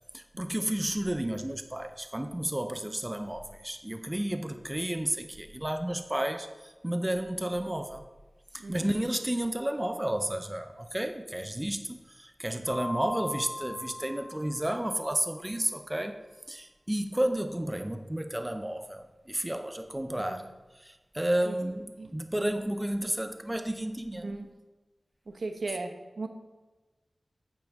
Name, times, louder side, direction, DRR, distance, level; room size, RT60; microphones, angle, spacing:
voice 1, 0.1-8.0 8.5-24.3, right 1 dB, 15° right, 8 dB, 0.5 m, -32 dB
voice 2, 8.6-9.1 20.2-20.4 21.4-21.6 22.0-22.2 24.1-24.5 25.3-26.3, right 3 dB, 70° right, 6 dB, 1.0 m, -37 dB
Mallet percussion, 12.7-15.3, left 1 dB, 10° left, 2.5 m, -40 dB
9.0 x 8.3 x 3.6 m, 1.2 s
wide cardioid pair, 65°, 0 cm